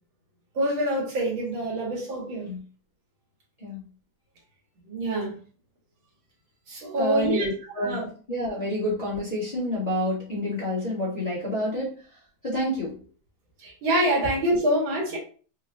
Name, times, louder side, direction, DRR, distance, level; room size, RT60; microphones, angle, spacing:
voice 1, 0.6-2.5 4.8-5.3 6.7-7.5 7.8-8.1 13.6-15.2, right 1 dB, 80° right, -2 dB, 2.0 m, -26 dB
voice 2, 7.0-8.0 8.3-12.0 12.4-12.9, equal, 25° left, -7 dB, 1.1 m, -28 dB
4.8 x 2.3 x 2.5 m, 0.40 s
omnidirectional pair, 2.2 m